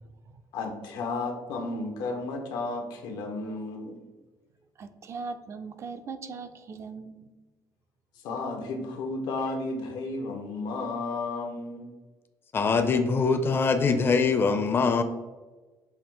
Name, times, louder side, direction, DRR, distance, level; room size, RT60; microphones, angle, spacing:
voice 1, 0.5-4.0 8.1-11.9, left 3 dB, 85° left, 4 dB, 0.8 m, -33 dB
voice 2, 4.8-7.3, right 4 dB, 40° right, 9 dB, 0.4 m, -39 dB
voice 3, 12.5-15.0, left 4 dB, 30° left, 8 dB, 0.5 m, -23 dB
5.5 x 2.5 x 3.8 m, 1.2 s
cardioid pair, 125°, 7 cm